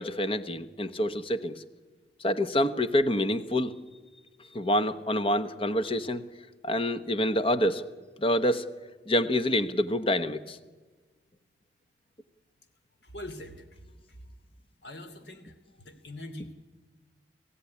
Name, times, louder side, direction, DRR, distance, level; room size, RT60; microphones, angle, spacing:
voice 1, 0.0-1.6 2.2-3.7 4.5-6.2 6.6-7.8 8.2-8.6 9.1-10.6, left 1 dB, 30° left, 11 dB, 1.1 m, -27 dB
voice 2, 13.0-13.8 14.1-14.3 14.8-16.5, left 1 dB, 65° left, 8 dB, 3.0 m, -43 dB
30.0 x 15.5 x 9.9 m, 1.3 s
head